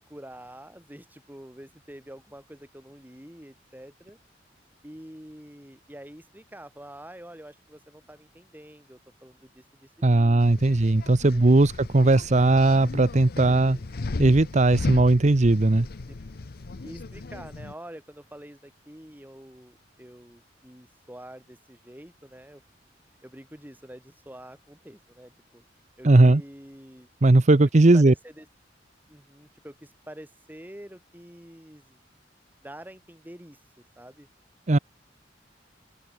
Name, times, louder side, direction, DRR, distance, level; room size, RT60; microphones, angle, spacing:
voice 1, 0.0-4.2 4.8-10.8 11.2-11.7 13.5-13.9 16.8-22.6 23.2-25.6 26.0-27.1 27.9-28.5 29.1-32.0 32.6-33.6 34.0-34.3, right 1 dB, 10° right, 3.4 m, -46 dB
voice 2, 10.0-13.8 14.2-15.9 26.0-26.4 27.2-28.1 34.7-34.8, right 2 dB, 40° right, 0.7 m, -18 dB
sound 1, 10.4-17.7, left 3 dB, 55° left, 0.7 m, -36 dB
open air
head